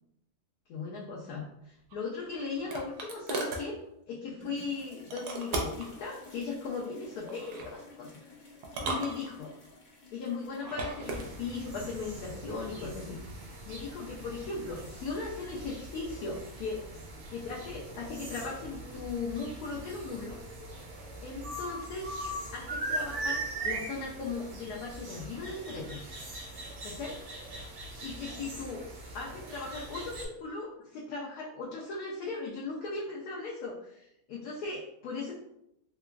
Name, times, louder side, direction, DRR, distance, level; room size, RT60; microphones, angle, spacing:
voice 1, 0.7-3.8 4.1-8.5 8.8-9.6 10.1-13.2 13.6-16.9 17.3-20.4 21.2-22.1 22.5-26.0 26.8-27.2 28.0-28.8 29.1-35.4, left 4 dB, 75° left, -3 dB, 1.1 m, -38 dB
sound 1, 1.9-3.7 5.1-5.9 7.3-7.7 8.6-9.7 10.5-11.3, right 2 dB, 85° right, 1.2 m, -36 dB
sound 2, 4.4-11.6, left 3 dB, 60° left, 0.5 m, -52 dB
sound 3, 11.0-30.3, right 2 dB, 55° right, 1.1 m, -41 dB
3.4 x 2.9 x 2.3 m, 0.78 s
omnidirectional pair, 1.6 m